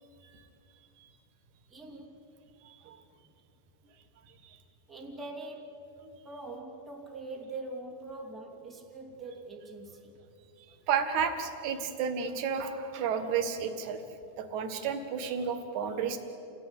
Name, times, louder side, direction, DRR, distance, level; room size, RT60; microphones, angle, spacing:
voice 1, 1.7-2.2 4.9-5.8 6.2-10.2, right 2 dB, ahead, 1.0 m, -43 dB
voice 2, 2.6-3.0 4.4-4.6 10.9-14.0 14.4-16.2, right 6 dB, 55° right, 2.2 m, -32 dB
29.0 x 17.0 x 9.9 m
omnidirectional pair, 5.5 m